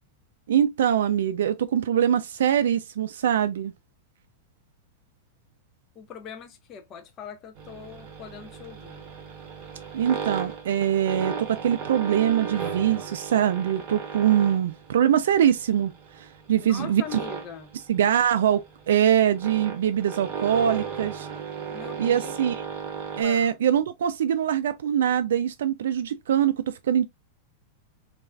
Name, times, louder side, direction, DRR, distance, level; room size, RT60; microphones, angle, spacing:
voice 1, 0.5-3.7 9.9-15.9 16.2-17.2 17.9-21.3 22.0-22.5 23.2-27.0, right 9 dB, 90° right, 0.3 m, -23 dB
voice 2, 6.0-9.1 16.6-17.7 21.7-22.4 23.2-23.6, left 7 dB, 20° left, 0.4 m, -41 dB
sound 1, 7.6-23.2, right 6 dB, 30° right, 0.8 m, -36 dB
3.2 x 2.3 x 2.3 m
supercardioid pair, 175°, 0 cm